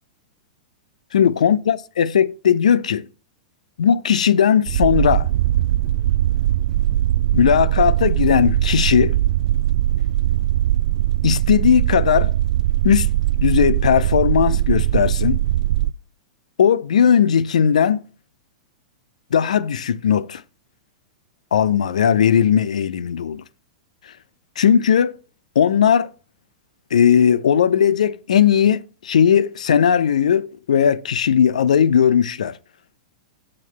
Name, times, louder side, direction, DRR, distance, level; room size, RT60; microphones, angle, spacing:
voice 1, 1.1-3.1 3.8-5.3 7.3-9.1 11.2-12.3 12.8-13.1 13.4-15.4 16.6-18.0 19.3-20.4 21.5-23.4 24.6-25.1 25.6-26.1 26.9-32.6, left 8 dB, 70° left, 0.5 m, -17 dB
sound 1, 4.7-15.9, right 13 dB, 60° right, 0.4 m, -20 dB
7.5 x 4.5 x 7.0 m
figure-of-eight pair, 100°, 4 cm